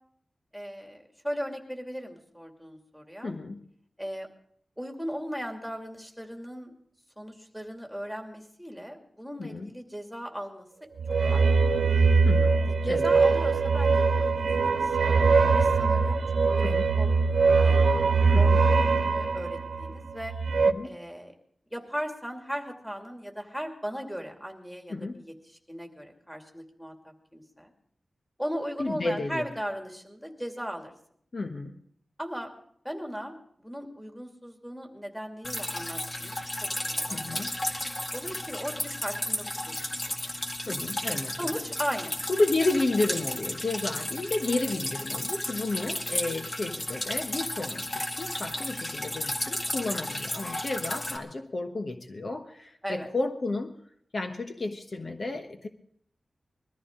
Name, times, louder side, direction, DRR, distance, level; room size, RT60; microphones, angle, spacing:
voice 1, 0.5-3.4 4.0-4.3 4.8-6.7 7.2-10.6 11.3-11.7 12.7-17.1 18.4-18.5 19.0-20.3 20.8-21.3 21.7-25.3 25.7-27.7 28.4-30.9 32.2-32.5 32.8-33.3 33.6-37.5 38.1-39.9 40.2-40.3 41.4-42.2 52.8-53.1, equal, ahead, 2 dB, 2.5 m, -37 dB
voice 2, 3.2-3.6 9.4-9.7 12.2-13.2 16.6-16.9 18.3-18.6 20.7-21.0 24.9-25.2 28.8-29.5 31.3-31.8 37.1-37.6 40.7-41.4 42.3-53.7 54.1-55.7, left 2 dB, 50° left, 4 dB, 1.1 m, -32 dB
sound 1, 11.0-20.7, right 4 dB, 90° right, 0.8 m, -22 dB
Drip, 35.4-51.2, left 1 dB, 30° left, 1.9 m, -33 dB
21.5 x 14.0 x 3.8 m, 0.64 s
wide cardioid pair, 95°, 0 cm